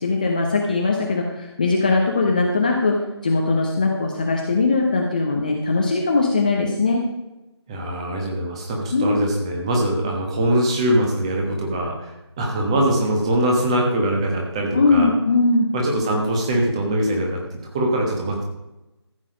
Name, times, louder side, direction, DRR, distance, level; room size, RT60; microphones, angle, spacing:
voice 1, 0.0-3.0 3.2-7.0 8.9-9.2 14.7-15.7, left 3 dB, 15° left, 0 dB, 0.7 m, -20 dB
voice 2, 7.7-15.1 15.7-17.4 17.7-18.4, right 1 dB, 10° right, 0 dB, 1.2 m, -22 dB
14.0 x 7.4 x 5.2 m, 0.97 s
figure-of-eight pair, 165°, 15 cm